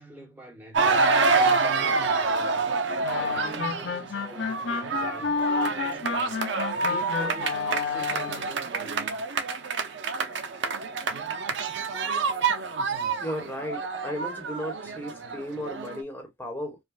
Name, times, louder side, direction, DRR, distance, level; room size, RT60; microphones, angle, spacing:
voice 1, 0.0-2.7 3.1-6.5 6.9-9.2, equal, 10° right, 1.1 m, -45 dB
sound 1, 0.7-16.0, right 4 dB, 70° right, 0.6 m, -27 dB
sound 2, 3.0-8.6, left 5 dB, 80° left, 0.6 m, -30 dB
voice 2, 13.2-16.8, equal, 10° left, 1.1 m, -35 dB
4.8 x 2.2 x 2.4 m
head